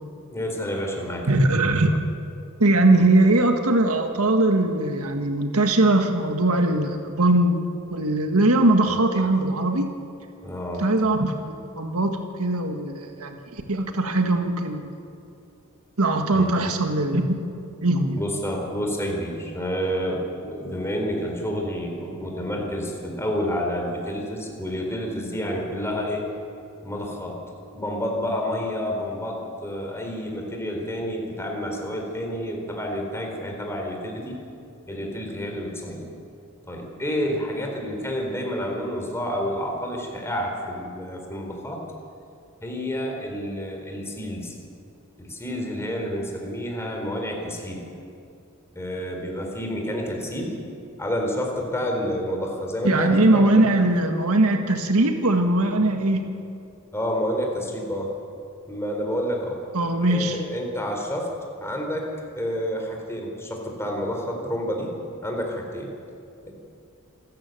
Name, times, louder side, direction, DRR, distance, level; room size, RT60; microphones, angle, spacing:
voice 1, 0.3-1.3 10.4-10.9 16.3-16.5 18.2-26.3 26.8-27.4 27.7-34.4 34.9-36.1 36.7-41.8 42.6-44.6 45.2-47.8 48.7-50.6 51.0-53.7 55.8-55.9 56.9-58.1 58.7-59.6 60.0-61.3 61.6-62.1 62.4-64.9 65.2-65.9 66.5-66.6, equal, 10° left, 1 dB, 4.0 m, -29 dB
voice 2, 1.3-2.0 2.6-7.6 7.9-9.9 10.8-13.4 13.7-14.9 16.0-17.3 17.8-18.2 52.8-56.3 59.7-60.4, right 2 dB, 90° right, 5 dB, 1.8 m, -20 dB
27.0 x 13.5 x 9.2 m, 2.6 s
head